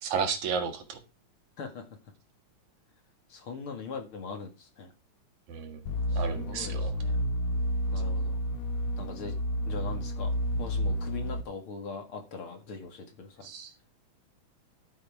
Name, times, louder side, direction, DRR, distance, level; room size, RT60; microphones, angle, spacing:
voice 1, 0.0-1.0 5.5-5.8 6.1-7.0 13.4-13.7, right 6 dB, 75° right, 6 dB, 3.2 m, -33 dB
voice 2, 3.3-4.9 6.1-7.2 7.9-8.4 9.0-9.3 9.7-10.3 10.6-13.5, left 4 dB, 50° left, 6 dB, 2.6 m, -41 dB
sound 1, 5.9-11.4, equal, 70° left, 1.2 m, -30 dB
13.0 x 7.6 x 4.8 m, 0.28 s
omnidirectional pair, 3.4 m